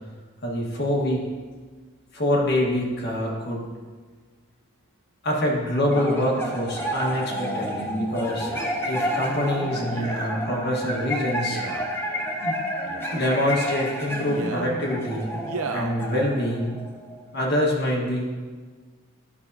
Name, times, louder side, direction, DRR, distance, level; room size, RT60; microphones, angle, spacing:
voice 1, 0.4-1.2 2.1-3.6 5.2-8.5 8.9-11.6 12.4-12.5 13.1-15.4 15.7-16.8 17.3-18.3, left 1 dB, 50° left, -2 dB, 1.4 m, -25 dB
sound 1, 5.9-17.5, equal, 10° left, 0.9 m, -30 dB
Male speech man speaking, 8.4-8.7 9.9-10.3 11.4-11.9 12.8-13.3 14.2-14.7 15.5-15.9 16.6-16.7, right 4 dB, 85° right, 0.7 m, -35 dB
11.0 x 6.5 x 2.7 m, 1.5 s
head